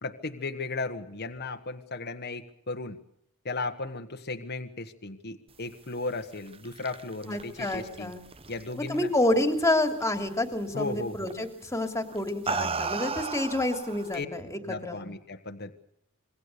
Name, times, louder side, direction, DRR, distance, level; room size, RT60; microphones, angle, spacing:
voice 1, 0.0-3.0 3.4-8.1 8.5-9.1 10.7-11.4 14.1-14.3 14.6-15.7, left 3 dB, 50° left, 5 dB, 1.5 m, -35 dB
sound 1, 6.4-9.2 9.6-10.0 11.3-11.5 12.1-14.2, right 4 dB, 25° right, 0.9 m, -34 dB
voice 2, 7.3-8.2 8.9-15.0, left 1 dB, 15° left, 6 dB, 3.0 m, -28 dB
26.5 x 21.5 x 6.8 m, 0.74 s
head